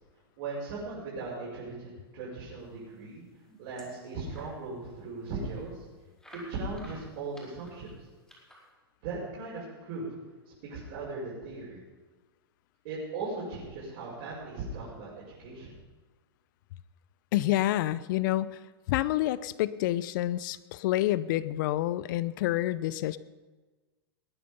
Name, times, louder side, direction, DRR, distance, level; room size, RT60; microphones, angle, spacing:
voice 1, 0.4-3.2 3.6-5.8 6.5-8.0 9.0-10.0 10.6-11.8 12.8-15.7, right 3 dB, 55° right, -7 dB, 6.3 m, -38 dB
sound 1, 3.0-4.6 5.0-5.1 5.4-5.5 6.2-8.7, equal, 5° left, 5.2 m, -53 dB
voice 2, 17.3-18.6 18.9-23.2, left 15 dB, 55° left, 17 dB, 0.7 m, -28 dB
20.5 x 9.7 x 5.5 m, 1.3 s
hypercardioid pair, 105°, 13 cm